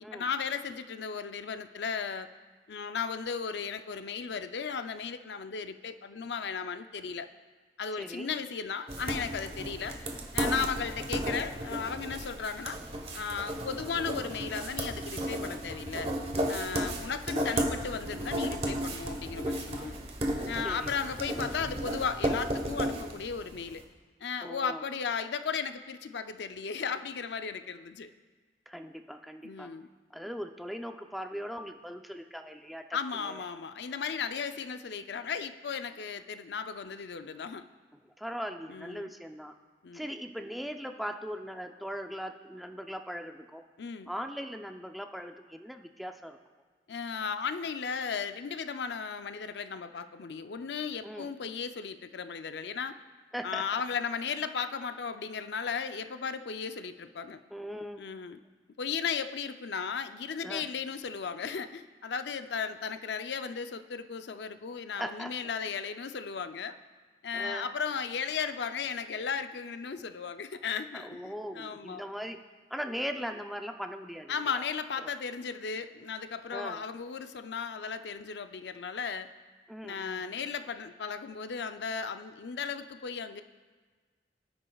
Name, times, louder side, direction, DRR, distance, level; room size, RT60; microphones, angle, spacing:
voice 1, 0.1-2.3 2.7-7.3 7.8-10.0 10.3-12.8 13.1-16.1 16.5-20.0 20.5-23.8 24.2-28.1 29.4-29.9 32.9-37.6 38.7-39.1 39.8-40.1 43.8-44.1 46.9-53.0 53.4-57.4 58.0-58.4 58.8-66.8 67.2-72.0 74.3-79.3 79.8-83.4, left 6 dB, 70° left, 10 dB, 0.5 m, -35 dB
voice 2, 8.0-8.3 10.5-10.7 16.7-16.9 20.6-21.0 24.4-24.9 28.7-29.7 30.1-32.8 33.2-33.4 38.1-39.5 39.9-43.6 44.1-46.4 51.0-51.3 53.3-53.8 57.5-58.1 60.4-60.7 65.0-65.3 67.3-67.7 70.9-72.4 72.7-74.7 75.0-75.1 76.5-76.8 79.7-80.2, equal, ahead, 5 dB, 0.5 m, -39 dB
sound 1, 8.9-23.7, right 1 dB, 35° right, 1.2 m, -34 dB
18.5 x 9.8 x 2.3 m, 1.4 s
head